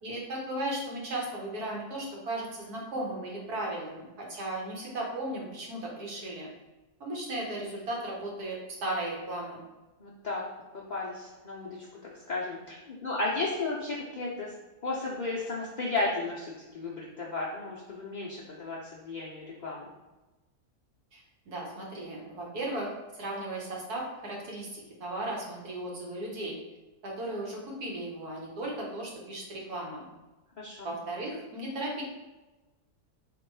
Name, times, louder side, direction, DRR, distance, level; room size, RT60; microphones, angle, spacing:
voice 1, 0.0-6.5 7.0-9.6 21.1-26.6 27.0-30.1 30.8-32.0, right 1 dB, 80° right, -2 dB, 1.6 m, -36 dB
voice 2, 10.0-10.4 10.7-14.5 14.8-19.9 30.6-30.9, left 3 dB, 55° left, -5 dB, 0.5 m, -34 dB
3.7 x 3.0 x 4.6 m, 1.1 s
omnidirectional pair, 1.6 m